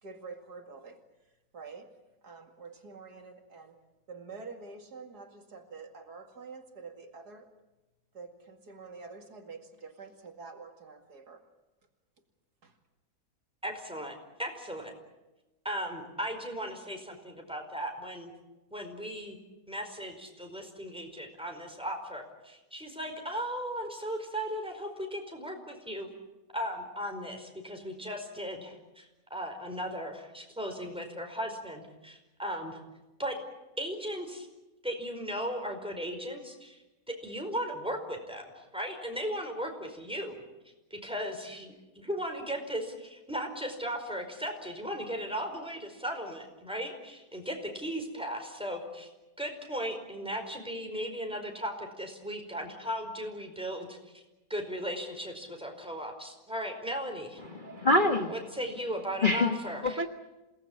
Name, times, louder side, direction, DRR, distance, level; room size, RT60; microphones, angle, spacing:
voice 1, 0.0-2.0 2.2-3.8 4.1-7.5 8.1-11.4 12.6-12.8, right 4 dB, 80° right, 2.8 m, -47 dB
voice 2, 13.6-14.9 15.6-18.3 18.7-19.4 19.7-26.1 26.5-32.8 33.2-33.4 33.8-34.5 34.8-36.8 37.2-40.4 40.9-49.1 49.4-54.2 54.5-57.4 58.3-60.0, equal, 5° right, 4.9 m, -37 dB
voice 3, 57.4-58.3 59.2-59.6 59.8-60.1, left 2 dB, 35° left, 1.4 m, -25 dB
28.0 x 19.0 x 8.7 m
omnidirectional pair, 1.7 m